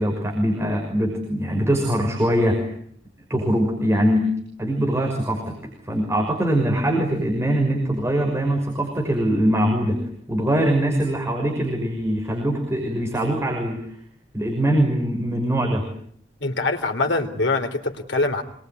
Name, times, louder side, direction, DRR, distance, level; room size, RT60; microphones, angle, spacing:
voice 1, 0.0-2.6 3.3-4.2 4.6-5.5 5.8-10.0 10.3-13.8 14.3-15.8, right 1 dB, 15° right, 1 dB, 5.9 m, -22 dB
voice 2, 16.4-18.4, left 3 dB, 70° left, 6 dB, 3.3 m, -23 dB
27.0 x 22.0 x 9.5 m, 0.67 s
head